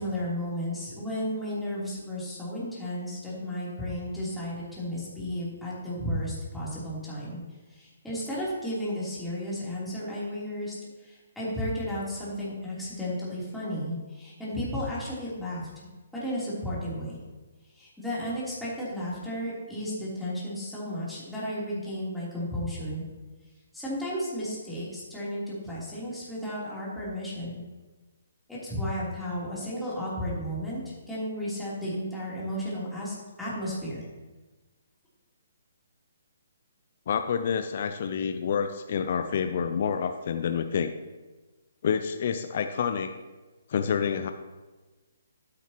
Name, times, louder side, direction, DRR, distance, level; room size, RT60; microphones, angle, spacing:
voice 1, 0.0-7.4 7.7-15.7 16.1-17.2 17.7-23.0 23.7-27.6 28.5-34.1, equal, 5° left, -9 dB, 3.4 m, -33 dB
voice 2, 37.1-40.9 41.8-43.1 43.7-44.3, left 7 dB, 50° left, 8 dB, 0.6 m, -28 dB
11.5 x 9.8 x 3.0 m, 1.2 s
hypercardioid pair, 150°, 0 cm